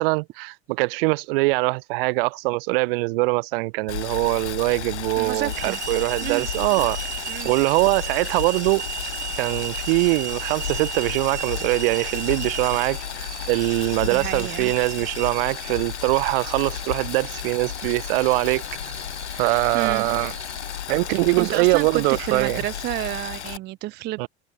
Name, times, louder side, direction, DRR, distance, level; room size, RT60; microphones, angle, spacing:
voice 1, 0.0-7.0 7.4-8.9 9.4-18.6 19.4-20.3 20.9-22.6 24.2-24.3, right 26 dB, 55° right, 1.0 m, -23 dB
Boiling, 3.9-23.6, left 10 dB, 80° left, 0.7 m, -33 dB
voice 2, 5.2-5.8 6.2-6.5 7.3-7.5 14.0-14.7 19.7-20.1 21.4-24.3, right 17 dB, 30° right, 0.5 m, -30 dB
sound 1, 5.5-20.8, right 9 dB, 80° right, 0.7 m, -36 dB
figure-of-eight pair, 70°, 34 cm